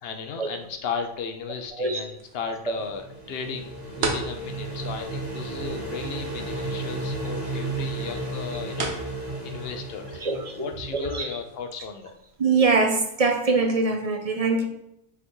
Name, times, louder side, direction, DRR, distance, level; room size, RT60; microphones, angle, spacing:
voice 1, 0.0-9.1 9.4-12.1, left 6 dB, 70° left, 6 dB, 0.9 m, -35 dB
sound 1, 0.6-13.2, right 3 dB, 80° right, 1.2 m, -40 dB
voice 2, 1.7-2.1 4.0-4.1 10.2-11.4 12.4-14.6, right 3 dB, 45° right, 5 dB, 0.6 m, -23 dB
sound 2, 2.5-11.3, right 2 dB, 60° right, 2.5 m, -34 dB
5.8 x 5.6 x 3.1 m, 0.81 s
omnidirectional pair, 1.0 m